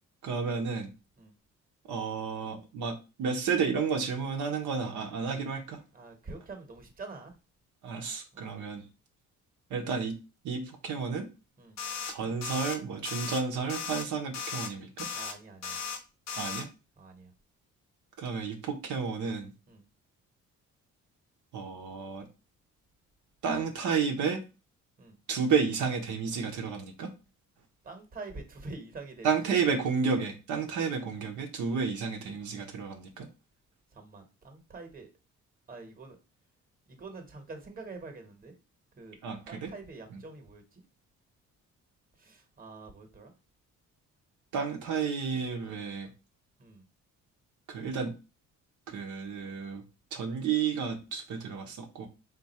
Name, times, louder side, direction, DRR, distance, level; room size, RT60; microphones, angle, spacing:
voice 1, 0.2-0.9 1.9-5.8 7.8-8.8 9.7-10.2 10.4-11.3 12.1-15.1 16.4-16.7 18.2-19.5 21.5-22.3 23.4-24.4 25.3-27.1 29.2-33.3 39.2-39.7 40.1-40.2 44.5-46.1 47.7-48.1 48.9-49.8 50.1-52.1, right 5 dB, 75° right, 2 dB, 0.8 m, -31 dB
voice 2, 5.9-7.3 8.3-8.4 11.6-11.8 15.1-15.8 17.0-17.3 19.7-19.8 25.0-25.2 27.8-29.6 33.9-35.1 35.7-36.2 36.9-38.5 39.0-39.2 39.5-40.8 42.2-43.3 46.6-46.8, right 3 dB, 30° right, 5 dB, 1.1 m, -46 dB
sound 1, 11.8-12.1 12.4-12.8 13.0-13.4 13.7-14.0 14.3-14.7 15.0-15.3 15.6-16.0 16.3-16.6, left 6 dB, 60° left, 0.8 m, -36 dB
3.6 x 2.5 x 4.1 m, 0.29 s
cardioid pair, 90°, 30 cm